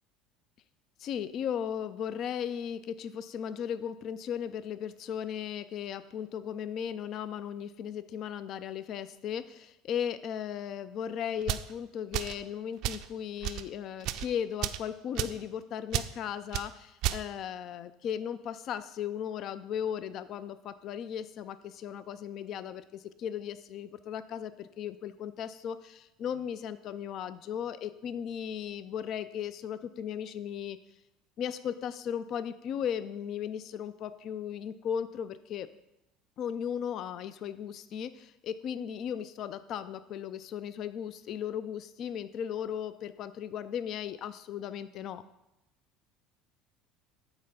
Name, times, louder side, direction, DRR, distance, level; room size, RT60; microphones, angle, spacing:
voice 1, 1.0-30.8 31.4-35.7 36.4-45.2, left 8 dB, 45° left, 14 dB, 0.3 m, -36 dB
sound 1, 11.4-11.7 12.1-12.4 12.8-13.1 13.4-13.6 14.0-14.3 14.6-14.8 15.2-15.4 15.9-16.1 16.5-16.7 17.0-17.2, right 13 dB, 55° right, 0.4 m, -32 dB
8.9 x 4.3 x 5.4 m, 0.90 s
cardioid pair, 150°, 0 cm